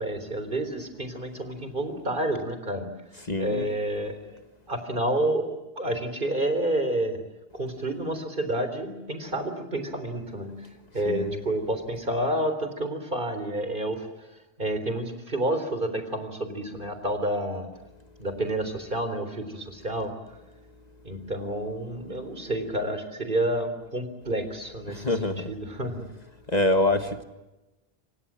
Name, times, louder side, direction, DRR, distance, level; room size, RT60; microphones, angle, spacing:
voice 1, 0.0-2.9 3.4-7.2 7.5-10.5 10.9-17.7 18.2-20.1 21.0-26.0, right 1 dB, 50° right, 3.9 m, -29 dB
voice 2, 3.3-3.7 11.0-11.4 24.9-25.5 26.5-27.2, left 2 dB, 40° left, 1.5 m, -25 dB
28.0 x 25.5 x 7.5 m
omnidirectional pair, 1.1 m